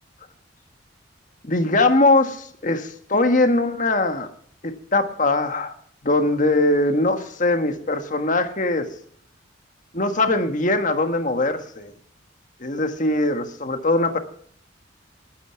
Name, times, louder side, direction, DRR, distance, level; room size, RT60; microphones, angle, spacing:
voice 1, 1.4-4.3 4.6-5.7 6.0-8.9 9.9-11.9 12.6-14.2, left 2 dB, 40° left, 7 dB, 1.5 m, -21 dB
20.5 x 9.3 x 5.8 m, 0.62 s
head